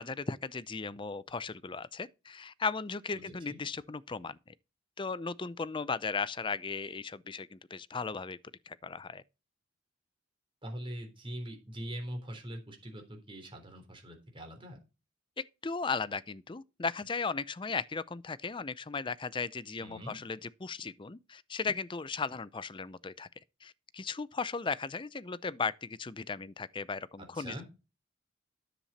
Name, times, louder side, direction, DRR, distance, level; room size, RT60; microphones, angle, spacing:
voice 1, 0.0-4.5 5.0-8.4 8.7-9.2 15.4-23.3 23.6-27.7, left 4 dB, 25° left, 0.5 m, -36 dB
voice 2, 3.1-3.6 10.6-14.8 19.8-20.2 27.2-27.6, equal, 25° right, 3.5 m, -43 dB
10.0 x 7.3 x 4.1 m
head